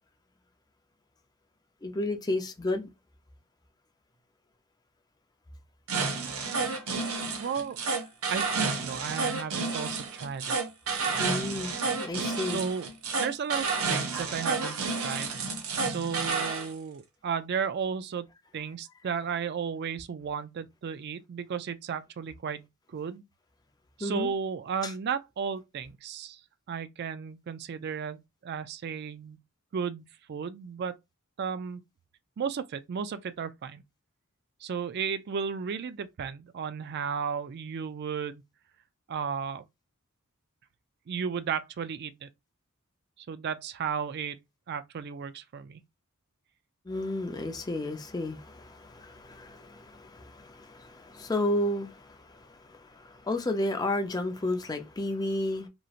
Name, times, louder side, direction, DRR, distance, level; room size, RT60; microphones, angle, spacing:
voice 1, 1.8-2.9 6.7-6.8 11.2-11.7 12.0-12.6 24.0-24.3 24.8-24.9 46.9-55.7, left 1 dB, 20° left, 0.5 m, -32 dB
sound 1, 5.9-16.7, right 4 dB, 80° right, 0.6 m, -31 dB
voice 2, 7.4-7.8 8.3-10.6 11.1-11.3 12.5-12.9 13.2-15.3 15.8-18.3 18.5-23.2 24.0-26.4 26.7-29.4 29.7-30.9 31.4-31.8 32.4-33.8 34.6-38.4 39.1-39.7 41.1-42.3 43.2-44.4 44.7-45.8, right 6 dB, 50° right, 0.3 m, -34 dB
3.0 x 2.6 x 2.4 m
head